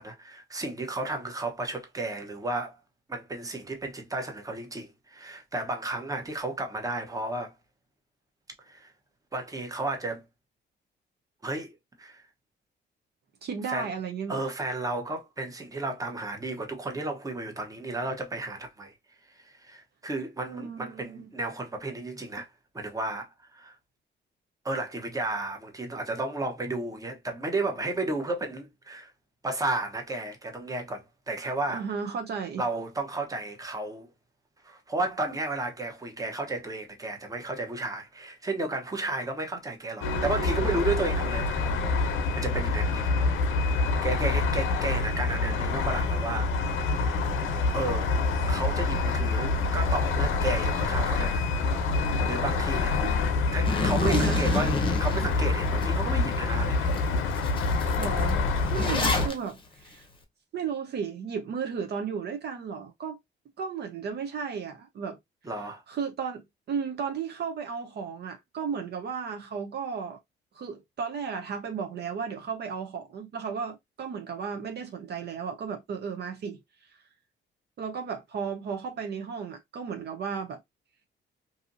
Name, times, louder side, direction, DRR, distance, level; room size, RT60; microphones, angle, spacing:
voice 1, 0.0-2.8 3.1-7.5 8.6-8.9 9.3-10.2 11.4-12.2 13.6-13.9 14.3-18.9 19.4-23.8 24.6-29.1 29.4-31.9 32.6-34.1 34.6-41.7 42.0-43.5 44.0-46.5 47.7-48.1 48.5-51.4 52.0-53.0 53.5-56.9 65.4-65.8, right 2 dB, 15° right, 0.8 m, -33 dB
voice 2, 13.4-14.5 20.6-21.3 31.7-32.6 53.0-53.3 54.0-54.7 58.0-58.5 58.7-60.1 60.5-63.2 63.6-65.2 65.9-70.2 70.5-76.9 77.8-80.6, right 6 dB, 55° right, 0.6 m, -34 dB
sound 1, 40.0-59.3, left 3 dB, 85° left, 0.6 m, -26 dB
Zipper (clothing), 53.7-55.9 56.4-56.5 56.9-57.1 57.3-59.3, left 3 dB, 25° left, 0.8 m, -29 dB
2.6 x 2.6 x 2.5 m
cardioid pair, 90°, 20 cm